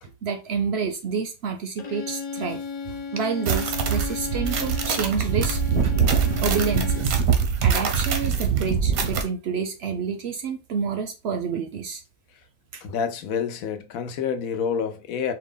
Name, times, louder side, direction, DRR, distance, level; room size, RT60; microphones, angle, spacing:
voice 1, 0.2-5.9 6.4-7.2 7.6-12.0 12.7-12.8, right 6 dB, 65° right, 0.7 m, -29 dB
Bowed string instrument, 1.8-7.2, left 5 dB, 40° left, 0.6 m, -35 dB
sound 1, 3.5-9.2, right 6 dB, 90° right, 1.2 m, -23 dB
voice 2, 12.8-15.3, left 7 dB, 80° left, 1.1 m, -28 dB
4.7 x 2.3 x 3.7 m
omnidirectional pair, 1.4 m